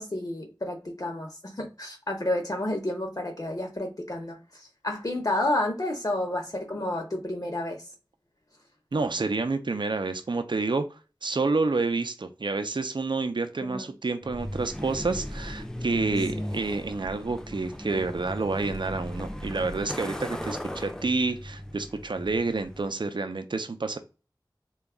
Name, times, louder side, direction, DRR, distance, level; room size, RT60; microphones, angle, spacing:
voice 1, 0.0-7.9 13.6-13.9 16.3-16.5, left 1 dB, 50° left, 0.8 m, -31 dB
voice 2, 8.9-10.9 11.2-24.0, right 3 dB, 80° right, 0.5 m, -29 dB
Truck, 14.2-23.0, left 1 dB, 10° left, 0.5 m, -37 dB
3.9 x 2.3 x 3.5 m
wide cardioid pair, 45°, 8 cm